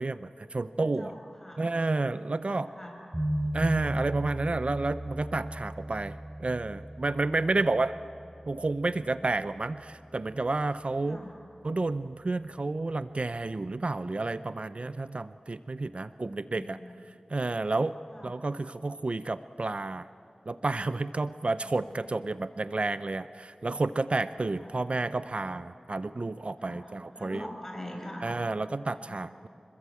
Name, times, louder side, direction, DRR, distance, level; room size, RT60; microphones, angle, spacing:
voice 1, 0.0-1.1 1.6-2.7 3.5-8.0 8.5-11.2 11.6-16.8 17.3-18.0 18.2-20.1 20.5-27.5 28.2-29.5, right 2 dB, 55° right, 13 dB, 0.5 m, -30 dB
voice 2, 0.7-1.6 2.4-3.0 11.0-11.4 16.1-17.0 18.1-18.3 21.5-22.1 24.5-24.8 26.6-28.3 28.9-29.2, left 1 dB, 15° left, 1 dB, 6.4 m, -45 dB
sound 1, 3.1-8.9, right 1 dB, 25° right, 4.4 m, -36 dB
26.5 x 21.5 x 8.3 m, 2.9 s
wide cardioid pair, 55°, 2 cm